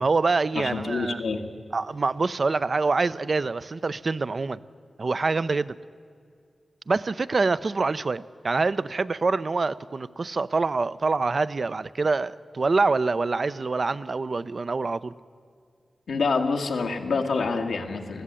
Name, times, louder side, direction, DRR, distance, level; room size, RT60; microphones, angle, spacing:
voice 1, 0.0-1.2 1.7-4.6 5.0-5.8 6.9-15.1, right 3 dB, 55° right, 0.6 m, -25 dB
voice 2, 0.6-1.5 16.1-18.2, left 4 dB, 85° left, 1.7 m, -27 dB
21.0 x 15.0 x 9.9 m
cardioid pair, 50°, 0 cm